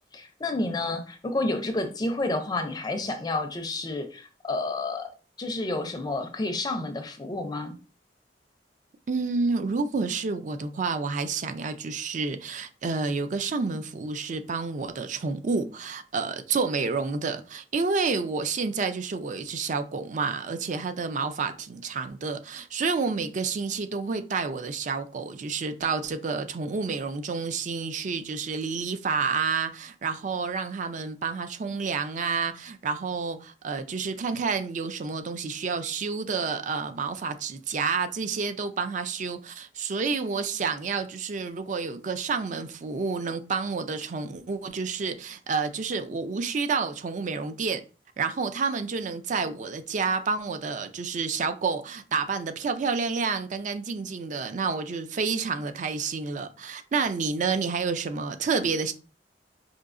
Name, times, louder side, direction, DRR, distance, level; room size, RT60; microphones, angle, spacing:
voice 1, 0.1-5.1 5.4-7.7, left 2 dB, 25° left, 0.4 m, -30 dB
voice 2, 9.1-47.8 48.2-58.9, right 4 dB, 45° right, 0.4 m, -29 dB
5.0 x 2.7 x 2.5 m
head